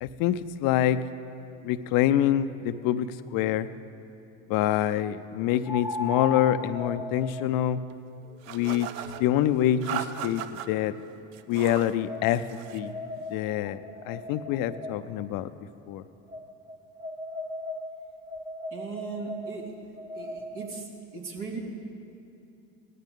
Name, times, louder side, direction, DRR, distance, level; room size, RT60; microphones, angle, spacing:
voice 1, 0.0-1.0 1.6-3.7 4.5-7.8 8.5-11.0 11.5-12.9 13.3-15.5 15.9-16.0, left 11 dB, 65° left, 13 dB, 0.6 m, -26 dB
sound 1, 3.0-3.1 5.6-10.8 11.5-15.3 16.3-20.9, left 2 dB, 10° right, 0.8 m, -38 dB
sound 2, 8.4-9.2 9.8-10.7 11.3-12.0 12.3-12.9, right 10 dB, 75° right, 0.7 m, -37 dB
voice 2, 18.7-19.7 20.1-21.6, right 4 dB, 60° right, -1 dB, 2.7 m, -38 dB
18.0 x 13.5 x 3.8 m, 2.6 s
supercardioid pair, 80°, 37 cm